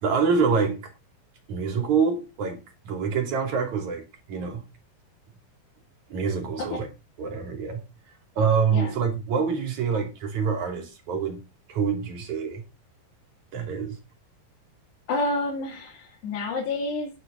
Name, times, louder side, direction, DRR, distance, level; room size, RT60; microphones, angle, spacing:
voice 1, 0.0-0.9 1.5-2.6 2.8-4.0 4.3-4.6 6.1-6.9 7.2-7.8 8.4-11.4 11.7-12.6 13.5-14.0, right 6 dB, 50° right, 5 dB, 4.0 m, -26 dB
voice 2, 15.1-17.1, left 2 dB, 80° left, -2 dB, 4.7 m, -29 dB
11.5 x 10.5 x 4.0 m, 0.26 s
omnidirectional pair, 4.8 m